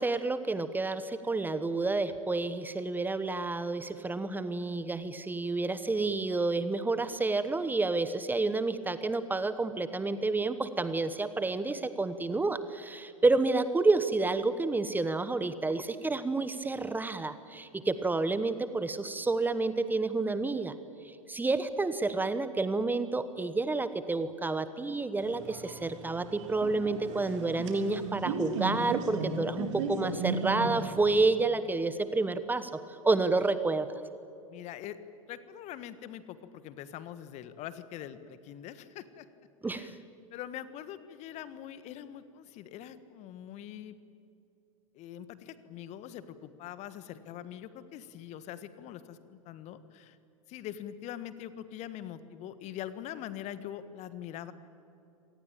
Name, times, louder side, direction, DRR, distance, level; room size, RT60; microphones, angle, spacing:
voice 1, 0.0-20.8 21.0-33.9 39.6-40.0, right 3 dB, 10° right, 12 dB, 1.2 m, -29 dB
sound 1, 25.2-31.3, right 4 dB, 60° right, 3.6 m, -36 dB
voice 2, 34.5-35.0 35.3-39.3 39.7-40.0 40.3-44.0 44.9-50.2 50.5-54.5, left 11 dB, 40° left, 13 dB, 1.5 m, -43 dB
26.0 x 19.0 x 8.9 m, 2.7 s
figure-of-eight pair, 90°, 17 cm